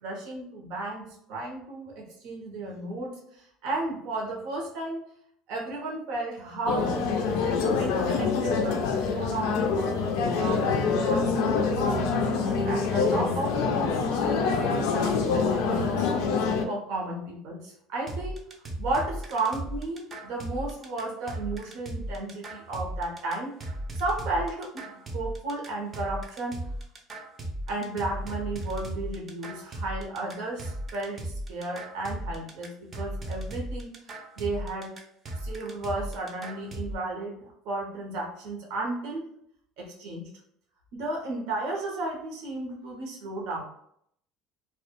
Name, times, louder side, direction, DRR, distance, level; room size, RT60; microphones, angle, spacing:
voice 1, 0.0-5.0 5.5-7.0 7.8-16.1 16.7-18.4 18.8-23.5 23.9-26.6 27.7-34.9 35.4-39.2 39.8-40.3 40.9-43.6, right 2 dB, 70° right, -1 dB, 0.8 m, -34 dB
sound 1, 6.7-16.7, left 4 dB, 80° left, 0.3 m, -25 dB
sound 2, 18.1-37.0, right 1 dB, 35° right, 0.5 m, -36 dB
2.2 x 2.0 x 2.9 m, 0.70 s
supercardioid pair, 100°, 0 cm